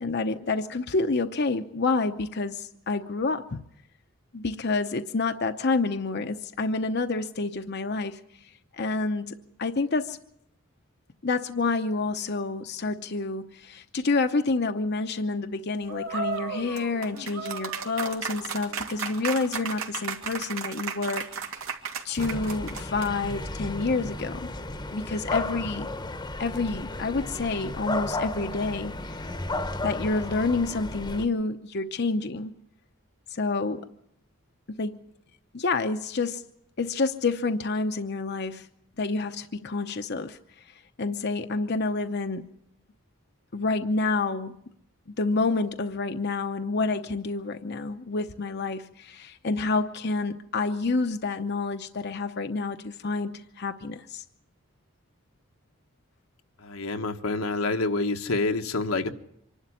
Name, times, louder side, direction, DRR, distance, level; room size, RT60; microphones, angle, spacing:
voice 1, 0.0-3.6 4.3-8.2 8.7-10.2 11.2-21.3 22.0-24.5 24.9-25.9 26.4-29.2 29.8-32.5 33.3-33.9 34.8-35.0 35.5-36.4 36.8-38.7 39.0-40.4 41.0-42.4 43.5-44.5 45.1-54.2, left 3 dB, 50° left, 7 dB, 0.8 m, -28 dB
sound 1, 15.9-23.3, right 5 dB, 85° right, 2.6 m, -34 dB
sound 2, 22.2-31.3, left 2 dB, 20° left, 1.0 m, -34 dB
voice 2, 56.6-59.1, left 3 dB, 85° left, 5 dB, 1.4 m, -27 dB
25.5 x 12.0 x 9.9 m, 0.75 s
head